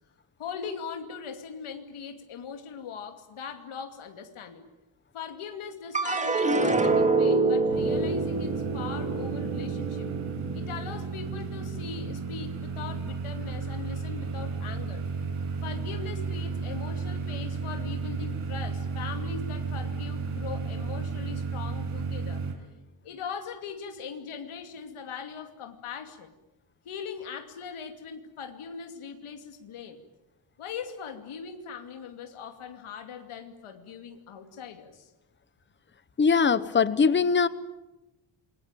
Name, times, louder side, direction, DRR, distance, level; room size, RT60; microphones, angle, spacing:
voice 1, 0.4-4.7 5.1-10.1 10.5-15.1 15.6-22.5 23.0-26.3 26.8-30.0 30.6-35.1, left 6 dB, 75° left, 6 dB, 2.7 m, -40 dB
sound 1, 5.9-12.4 12.8-13.5, right 3 dB, 15° right, 2.0 m, -27 dB
Bowed string instrument, 7.5-11.6, right 15 dB, 70° right, 1.5 m, -40 dB
sound 2, 7.7-22.5, right 5 dB, 85° right, 6.0 m, -33 dB
voice 2, 36.2-37.5, left 5 dB, 20° left, 15 dB, 0.9 m, -21 dB
28.0 x 23.0 x 9.0 m, 1.0 s
wide cardioid pair, 180°, 50 cm